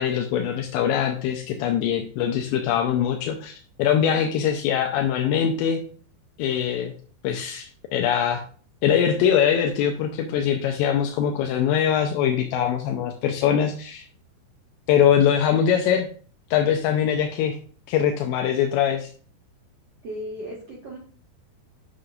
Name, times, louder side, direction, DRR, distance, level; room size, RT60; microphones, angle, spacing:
voice 1, 0.0-5.8 6.4-6.9 7.2-8.4 8.8-14.1 14.9-16.1 16.5-17.6 17.9-19.1, left 8 dB, 85° left, 3 dB, 2.6 m, -22 dB
voice 2, 20.0-21.0, equal, 85° right, -4 dB, 1.4 m, -36 dB
9.6 x 6.6 x 2.5 m, 0.44 s
omnidirectional pair, 5.6 m